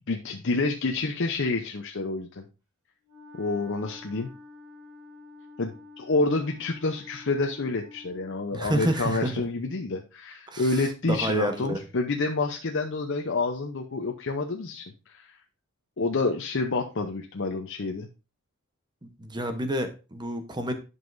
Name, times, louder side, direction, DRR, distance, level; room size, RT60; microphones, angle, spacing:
voice 1, 0.1-2.4 3.4-4.3 5.6-15.4 16.0-18.1, left 3 dB, 60° left, 3 dB, 0.7 m, -28 dB
Wind instrument woodwind instrument, 3.0-8.4, left 3 dB, 70° right, 3.2 m, -48 dB
voice 2, 8.5-9.4 10.5-11.8 19.0-20.7, right 1 dB, 20° right, 7 dB, 0.9 m, -29 dB
11.0 x 5.5 x 2.6 m, 0.31 s
head